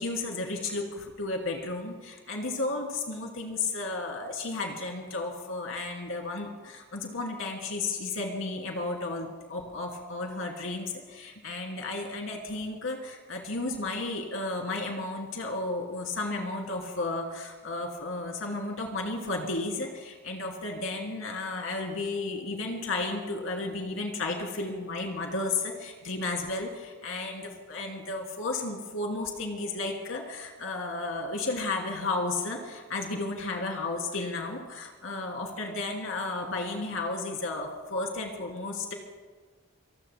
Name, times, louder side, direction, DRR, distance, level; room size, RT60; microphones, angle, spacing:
voice 1, 0.0-38.9, left 2 dB, 90° left, 1 dB, 3.0 m, -33 dB
28.5 x 19.5 x 2.2 m, 1.4 s
head